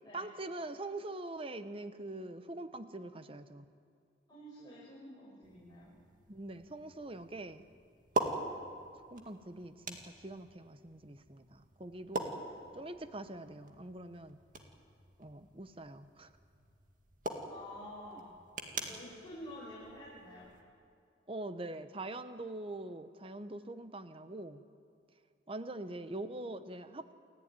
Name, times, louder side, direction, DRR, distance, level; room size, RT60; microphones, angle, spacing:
voice 1, 0.1-3.6 6.3-7.6 9.1-12.4 12.7-14.4 15.2-16.3 21.3-24.6 25.5-27.1, right 2 dB, 30° right, 11 dB, 0.9 m, -43 dB
voice 2, 4.3-5.9 12.6-12.8 17.5-18.4 18.7-20.5, left 1 dB, 20° left, -7 dB, 6.1 m, -49 dB
sound 1, 5.4-20.6, right 2 dB, 45° right, 2.2 m, -44 dB
29.0 x 14.0 x 9.7 m, 2.3 s
head